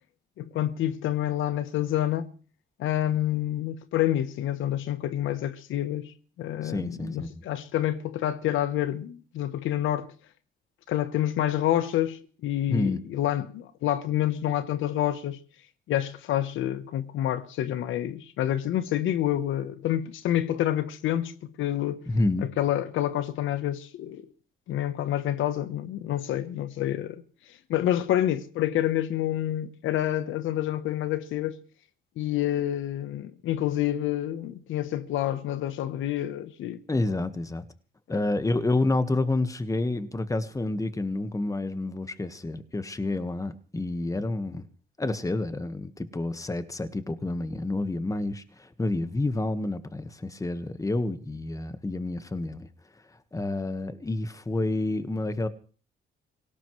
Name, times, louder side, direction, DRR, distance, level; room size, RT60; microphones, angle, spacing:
voice 1, 0.4-2.3 2.8-10.1 10.9-15.4 15.9-21.3 21.6-22.1 22.4-24.3 24.7-27.2 27.7-31.6 32.2-36.8 38.1-38.2, left 12 dB, 85° left, 1.0 m, -28 dB
voice 2, 6.6-7.3 12.7-13.0 22.1-22.5 36.9-37.6 38.1-44.7 45.0-52.7 53.3-55.5, left 2 dB, 15° left, 1.5 m, -29 dB
25.5 x 17.5 x 3.2 m
cardioid pair, 90°, 20 cm